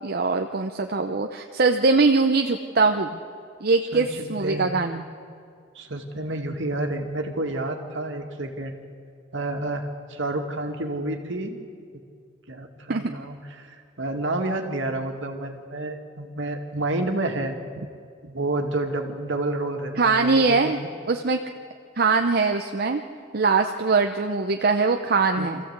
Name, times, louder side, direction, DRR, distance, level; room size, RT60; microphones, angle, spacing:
voice 1, 0.0-3.1 3.6-5.0 12.9-13.1 20.0-20.8 21.1-21.4 22.0-23.0 23.3-25.6, right 4 dB, 50° right, 4 dB, 0.8 m, -22 dB
voice 2, 3.9-5.1 5.8-8.8 9.3-11.6 12.5-17.6 18.2-20.9 25.4-25.5, right 2 dB, 70° right, 3 dB, 2.2 m, -30 dB
25.5 x 15.0 x 8.1 m, 2.2 s
head